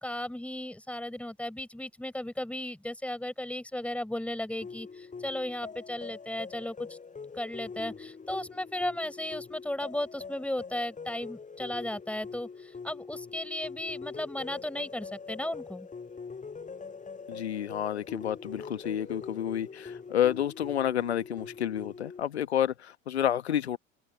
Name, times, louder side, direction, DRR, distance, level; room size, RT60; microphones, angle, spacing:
voice 1, 0.0-7.0 7.3-15.9, left 1 dB, 5° left, 4.2 m, -35 dB
sound 1, 4.6-22.2, left 5 dB, 25° left, 6.1 m, -43 dB
voice 2, 17.3-23.8, left 10 dB, 80° left, 1.3 m, -30 dB
open air
figure-of-eight pair, 65°, 32 cm